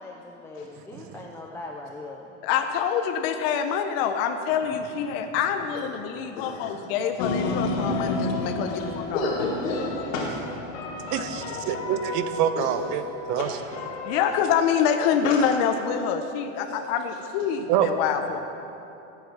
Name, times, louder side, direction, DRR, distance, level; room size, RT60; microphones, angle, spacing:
voice 1, 0.0-2.4, left 2 dB, 5° left, 0 dB, 0.4 m, -40 dB
voice 2, 2.4-9.2 14.0-18.4, left 7 dB, 50° left, 6 dB, 0.9 m, -26 dB
voice 3, 6.3-6.7 7.8-7.9 8.7-8.8 9.1-11.5 12.6-12.7 13.4-13.5 15.2-15.5 16.5-16.8 17.4-17.5, left 2 dB, 85° left, -5 dB, 2.1 m, -31 dB
sound 1, 7.2-14.8, left 2 dB, 70° left, 1.8 m, -32 dB
voice 4, 11.1-13.0 13.3-13.5 17.7-17.9, right 10 dB, 45° right, 10 dB, 0.9 m, -25 dB
14.5 x 8.4 x 6.1 m, 2.9 s
supercardioid pair, 130°, 39 cm